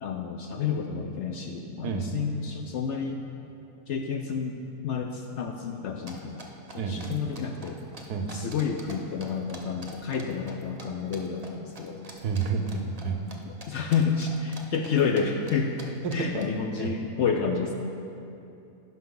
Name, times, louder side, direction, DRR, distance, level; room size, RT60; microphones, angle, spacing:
voice 1, 0.0-3.2 3.9-6.4 6.7-7.8 8.3-12.0 13.5-15.8 16.1-17.7, left 6 dB, 65° left, 4 dB, 0.7 m, -30 dB
sound 1, 6.1-8.9 9.2-10.8 11.1-11.5 11.7-13.3 13.6-15.2 15.5-15.6 15.8-16.4, right 3 dB, 30° right, 0.8 m, -45 dB
voice 2, 6.8-7.2 8.1-8.3 12.2-13.2 16.0-16.3 16.8-17.0, right 5 dB, 85° right, 5 dB, 1.3 m, -30 dB
15.5 x 5.7 x 3.8 m, 2.7 s
omnidirectional pair, 1.6 m